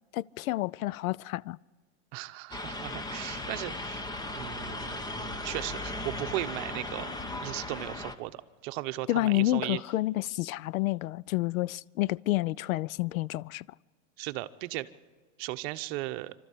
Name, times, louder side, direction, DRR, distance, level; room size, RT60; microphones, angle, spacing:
voice 1, 0.1-1.6 9.1-13.6, left 17 dB, 85° left, 0.5 m, -29 dB
voice 2, 2.1-4.0 4.3-9.8 14.2-14.9 15.4-16.3, right 18 dB, 50° right, 0.9 m, -37 dB
sound 1, 2.5-8.1, left 2 dB, 10° left, 0.9 m, -37 dB
27.0 x 13.0 x 8.5 m
supercardioid pair, 135°, 40 cm